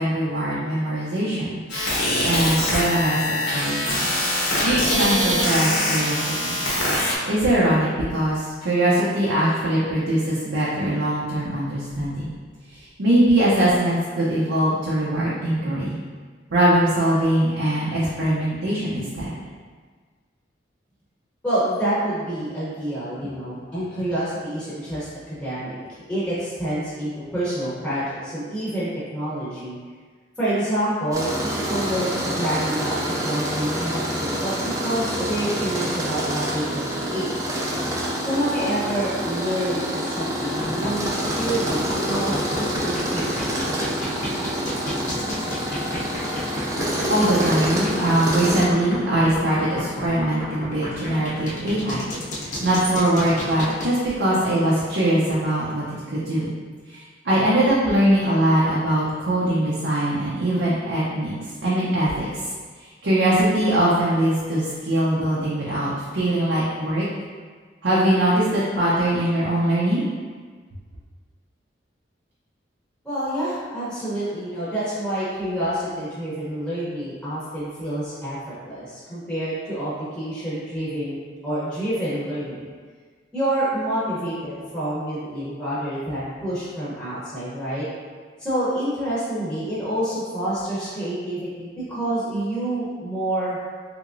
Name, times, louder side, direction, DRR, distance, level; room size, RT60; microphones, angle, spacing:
voice 1, 0.0-1.6 2.2-4.0 4.6-6.6 7.2-12.3 12.7-15.9 16.5-19.3 47.1-56.5 56.9-61.3 61.6-62.4 63.0-67.1 67.8-70.0, right 1 dB, 80° right, -8 dB, 0.6 m, -22 dB
sound 1, 1.7-7.2, left 1 dB, 85° left, 0.9 m, -23 dB
voice 2, 21.4-25.8 26.1-29.7 30.4-37.3 38.2-43.3 43.5-43.7 73.0-81.2 81.4-82.7 83.3-87.9 88.4-93.6, right 1 dB, 5° left, -10 dB, 0.8 m, -27 dB
Tools, 31.1-48.7, equal, 15° right, 0.4 m, -27 dB
sound 2, 40.4-53.9, left 1 dB, 45° left, 0.6 m, -32 dB
3.4 x 3.0 x 2.5 m, 1.5 s
head